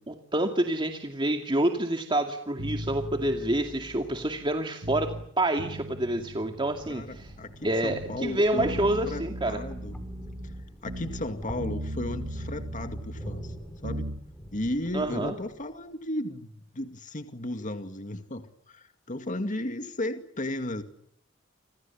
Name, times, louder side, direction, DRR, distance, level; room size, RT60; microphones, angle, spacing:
voice 1, 0.1-7.3 7.6-9.6 14.9-15.3, right 1 dB, 25° right, 4 dB, 2.4 m, -28 dB
sound 1, 2.6-5.3 5.6-7.6 7.9-11.3 11.6-14.2, right 1 dB, 70° right, 2.4 m, -38 dB
sound 2, 6.6-15.8, equal, 5° left, 6.3 m, -45 dB
voice 2, 6.9-8.8 9.1-9.9 10.2-10.5 10.8-13.5 13.8-14.1 14.5-20.8, left 1 dB, 40° left, 7 dB, 2.2 m, -35 dB
30.0 x 27.5 x 7.3 m, 0.68 s
head